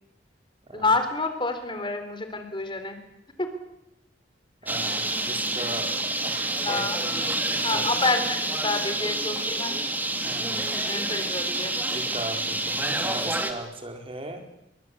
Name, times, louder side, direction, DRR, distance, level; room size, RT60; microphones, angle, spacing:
voice 1, 0.7-3.0 3.4-3.5 6.6-7.0 7.6-9.8 10.4-11.7, left 3 dB, 25° left, 8 dB, 3.7 m, -28 dB
voice 2, 4.6-7.9 10.2-11.0 11.9-14.4, right 1 dB, 30° right, 4 dB, 4.6 m, -38 dB
Bird, 4.7-13.5, right 2 dB, 10° right, 2.8 m, -28 dB
29.5 x 23.0 x 8.6 m, 0.84 s
head